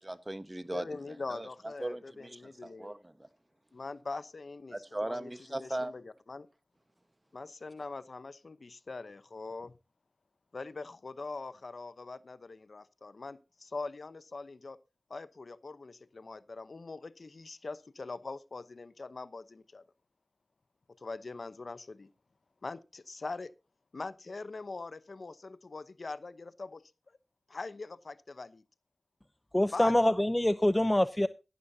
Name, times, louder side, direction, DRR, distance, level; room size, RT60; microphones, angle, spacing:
voice 1, 0.0-3.3 4.7-5.9, right 1 dB, 25° right, 1.2 m, -39 dB
voice 2, 0.7-3.0 3.7-5.3 5.6-6.5 7.3-9.7 10.5-14.8 15.1-19.8 21.0-22.1 22.6-23.5 23.9-26.8 27.5-28.6 29.7-29.9, left 3 dB, 65° left, 0.8 m, -42 dB
voice 3, 29.5-31.3, left 1 dB, 15° left, 0.6 m, -25 dB
15.5 x 12.0 x 2.8 m
cardioid pair, 45°, 0 cm